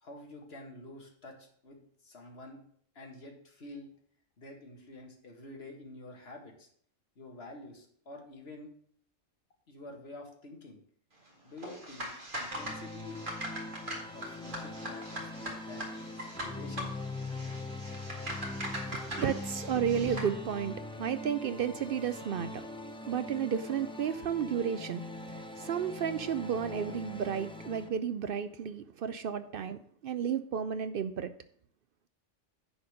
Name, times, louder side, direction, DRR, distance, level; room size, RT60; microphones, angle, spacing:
voice 1, 0.0-2.6 3.0-3.9 4.4-6.7 7.2-8.7 9.7-10.8 11.4-13.2 14.1-17.0, left 2 dB, 50° left, 2 dB, 1.9 m, -48 dB
sound 1, 11.6-20.3, equal, 40° right, 2.2 m, -41 dB
sound 2, 12.5-27.9, left 2 dB, 5° left, 0.6 m, -42 dB
voice 2, 18.6-22.7 23.0-31.3, right 8 dB, 60° right, 12 dB, 0.6 m, -33 dB
10.0 x 4.3 x 6.5 m, 0.62 s
omnidirectional pair, 1.3 m